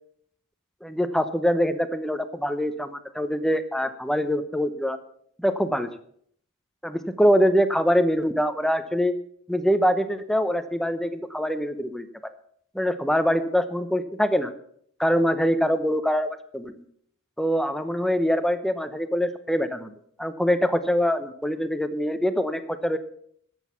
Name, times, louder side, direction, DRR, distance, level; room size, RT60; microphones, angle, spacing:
voice 1, 0.8-5.0 5.4-5.9 6.8-9.2 9.5-12.3 12.7-14.5 15.0-16.8 17.4-19.9 20.2-23.0, equal, ahead, 10 dB, 0.8 m, -24 dB
12.0 x 8.0 x 7.1 m, 0.64 s
head